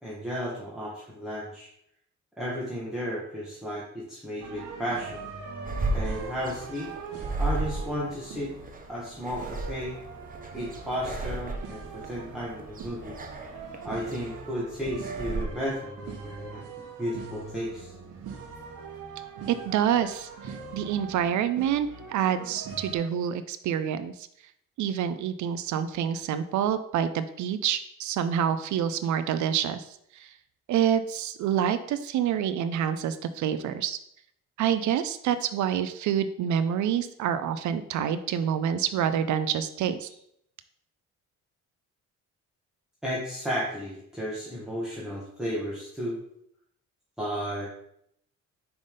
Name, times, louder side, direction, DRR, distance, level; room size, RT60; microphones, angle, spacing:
voice 1, 0.0-1.7 2.4-5.3 5.9-6.9 7.4-8.5 8.9-10.0 10.5-13.2 13.5-13.6 13.8-16.6 17.0-17.9 43.0-46.2 47.2-47.7, equal, ahead, -7 dB, 1.5 m, -33 dB
sound 1, 4.4-23.0, right 4 dB, 90° right, 1.1 m, -42 dB
sound 2, 5.7-15.5, right 2 dB, 30° right, 0.9 m, -34 dB
voice 2, 19.5-24.3 24.8-30.3 30.7-34.0 34.6-40.1, right 9 dB, 70° right, 12 dB, 0.5 m, -27 dB
5.3 x 3.5 x 5.3 m, 0.74 s
cardioid pair, 90°, 30 cm